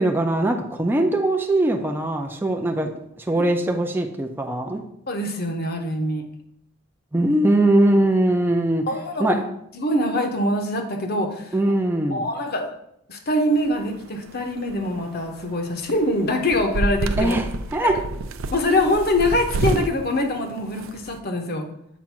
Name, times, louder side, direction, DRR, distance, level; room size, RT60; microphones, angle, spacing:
voice 1, 0.0-2.9 3.2-4.8 7.1-8.9 9.2-9.4 11.5-12.3 17.2-18.0, right 1 dB, 10° right, 2 dB, 0.4 m, -21 dB
voice 2, 5.1-6.2 8.9-9.4 9.7-11.5 12.1-12.7 13.1-17.4 17.8-17.9 18.5-21.7, left 1 dB, 50° left, 4 dB, 0.9 m, -24 dB
sound 1, 13.5-21.2, right 2 dB, 70° right, 0.4 m, -29 dB
7.2 x 2.6 x 5.8 m, 0.75 s
head